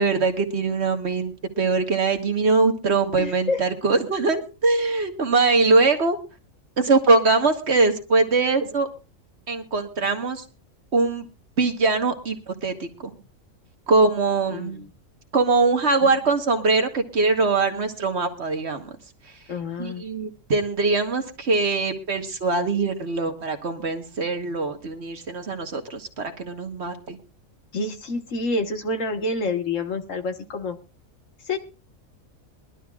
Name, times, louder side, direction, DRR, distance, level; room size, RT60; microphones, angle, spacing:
voice 1, 0.0-6.2 6.8-8.9 9.5-10.4 10.9-11.3 11.6-13.2 13.9-14.8 15.3-19.0 19.8-27.2, right 3 dB, 50° right, 6 dB, 1.6 m, -22 dB
voice 2, 3.2-3.6 14.5-14.9 16.0-16.1 19.5-20.0 27.7-30.8 31.4-31.6, left 2 dB, 65° left, 7 dB, 1.6 m, -28 dB
23.0 x 12.0 x 2.3 m, 0.32 s
omnidirectional pair, 1.4 m